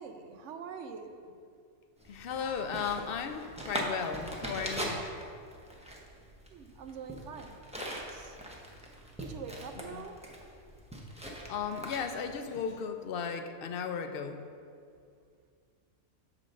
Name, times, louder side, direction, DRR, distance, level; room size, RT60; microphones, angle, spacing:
voice 1, 0.0-1.4 6.5-7.6 7.8-8.4 9.2-10.2, right 6 dB, 75° right, 7 dB, 0.9 m, -44 dB
sound 1, 2.0-12.3, right 1 dB, 5° right, 0.6 m, -41 dB
voice 2, 2.1-5.1 9.9-10.0 11.2-14.5, left 6 dB, 60° left, 7 dB, 0.6 m, -36 dB
7.5 x 3.9 x 6.3 m, 2.3 s
omnidirectional pair, 1.3 m